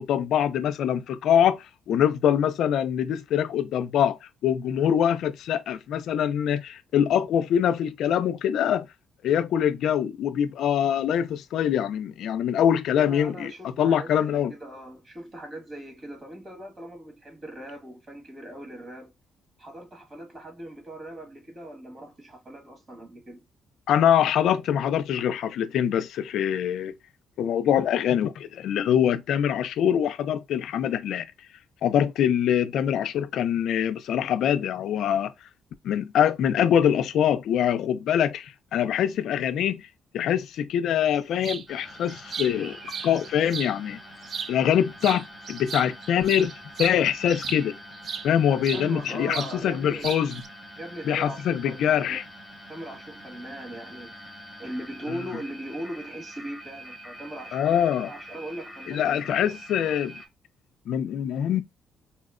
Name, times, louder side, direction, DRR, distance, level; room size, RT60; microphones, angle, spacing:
voice 1, 0.0-8.9 9.2-13.5 13.8-14.5 23.9-26.9 27.4-31.3 31.8-35.3 35.8-39.8 40.1-42.8 43.0-44.0 44.5-46.5 46.8-47.8 48.2-50.4 51.1-52.2 55.1-55.2 57.5-58.1 58.9-60.2 60.9-61.6, left 9 dB, 80° left, 0.3 m, -24 dB
voice 2, 13.0-19.1 19.6-23.4 48.5-50.1 50.8-52.2 52.7-59.4, right 1 dB, 40° right, 1.6 m, -40 dB
sound 1, 41.4-41.7 42.1-43.7 44.2-44.8 45.0-48.3 48.6-49.6 49.8-50.5, right 6 dB, 55° right, 0.3 m, -35 dB
sound 2, 41.7-60.3, equal, 10° right, 0.9 m, -45 dB
4.1 x 2.0 x 2.4 m
cardioid pair, 90°, 0 cm